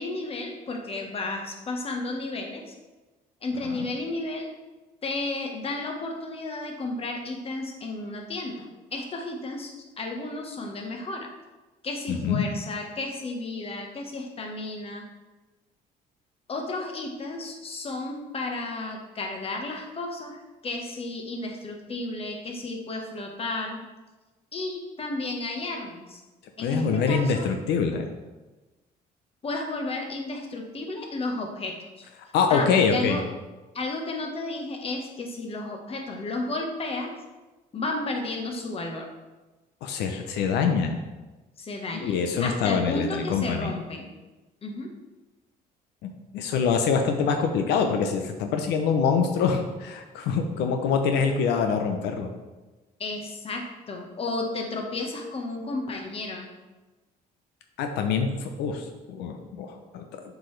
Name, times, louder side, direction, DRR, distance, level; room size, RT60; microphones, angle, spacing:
voice 1, 0.0-2.7 3.4-4.5 5.0-9.7 10.0-11.3 11.8-15.0 16.5-20.4 20.6-23.8 24.5-26.2 26.6-27.4 29.4-31.8 32.5-33.2 33.7-37.1 37.7-39.1 41.6-44.1 44.6-44.9 53.0-56.5, left 2 dB, 35° left, 2 dB, 1.2 m, -33 dB
voice 2, 12.1-12.4 26.6-28.1 32.3-33.2 39.8-41.0 42.0-43.7 46.0-52.3 57.8-58.8 59.1-60.1, left 6 dB, 85° left, 5 dB, 0.7 m, -25 dB
7.7 x 4.9 x 3.3 m, 1.2 s
cardioid pair, 110°, 17 cm